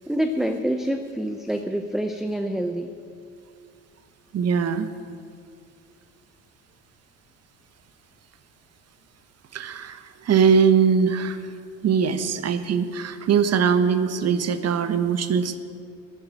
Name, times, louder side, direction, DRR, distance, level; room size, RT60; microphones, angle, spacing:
voice 1, 0.1-2.9, right 1 dB, ahead, 7 dB, 0.7 m, -26 dB
voice 2, 4.3-4.9 9.5-11.5 11.8-15.6, right 6 dB, 40° right, 12 dB, 1.1 m, -21 dB
10.5 x 8.2 x 9.9 m, 2.4 s
hypercardioid pair, 65°, 38 cm